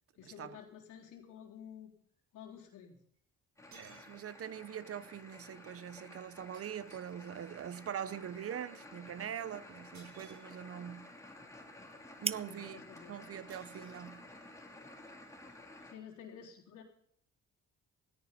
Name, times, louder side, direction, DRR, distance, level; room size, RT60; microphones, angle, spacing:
voice 1, 0.2-1.9 2.3-3.0 12.2-13.2 15.8-16.8, left 8 dB, 90° left, 3.9 m, -51 dB
sound 1, 1.0-1.1 3.1-3.2 3.7-4.6 6.5-7.8 9.9-10.9 13.5-14.6, right 4 dB, 70° right, 7.9 m, -62 dB
sound 2, 3.6-15.9, left 2 dB, 10° left, 3.4 m, -53 dB
voice 2, 3.7-11.1 12.2-12.8 13.1-14.3, right 9 dB, 50° right, 0.8 m, -43 dB
sound 3, 7.9-15.6, right 5 dB, 20° right, 0.5 m, -48 dB
18.5 x 14.0 x 4.2 m
cardioid pair, 90°, 30 cm